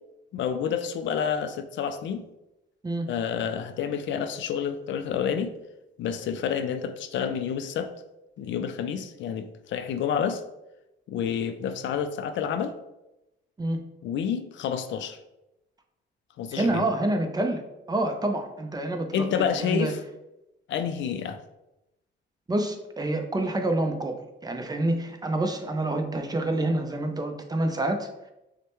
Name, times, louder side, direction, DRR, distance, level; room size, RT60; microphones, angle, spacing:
voice 1, 0.3-2.3 3.1-5.6 6.0-7.9 8.4-10.4 11.1-12.8 14.0-15.2 16.4-16.9 19.1-20.0 20.7-21.4, left 7 dB, 70° left, 0.4 m, -29 dB
voice 2, 16.5-17.6 17.9-19.9 22.5-28.3, right 1 dB, 20° right, 0.5 m, -27 dB
6.2 x 2.2 x 3.0 m
cardioid pair, 90°, 20 cm